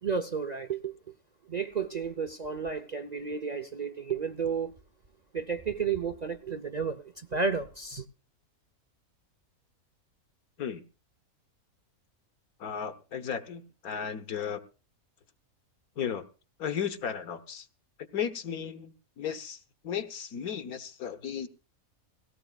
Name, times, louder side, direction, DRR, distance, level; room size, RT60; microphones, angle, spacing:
voice 1, 0.0-0.9 1.5-4.7 5.3-8.0, right 5 dB, 40° right, 0.6 m, -32 dB
voice 2, 12.6-14.6 16.0-16.2 16.6-17.7 18.1-21.5, left 8 dB, 80° left, 1.6 m, -35 dB
18.0 x 17.5 x 2.3 m
omnidirectional pair, 1.5 m